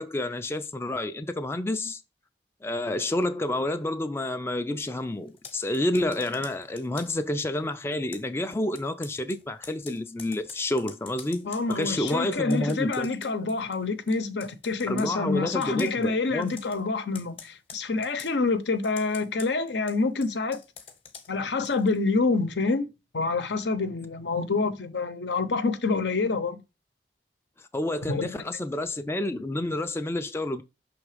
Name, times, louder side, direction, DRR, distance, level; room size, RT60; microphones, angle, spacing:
voice 1, 0.0-2.0 2.6-13.1 14.9-16.5 27.7-30.6, left 1 dB, 15° left, 0.4 m, -29 dB
Computer keyboard, 5.3-7.3 8.1-13.8 14.1-15.1 15.6-16.1 16.4-16.8 17.1-18.4 18.8-22.0, left 6 dB, 35° left, 0.9 m, -47 dB
voice 2, 11.4-20.6 21.3-22.9 23.1-26.6 28.1-28.3, left 3 dB, 80° left, 0.8 m, -27 dB
5.8 x 3.5 x 4.8 m
head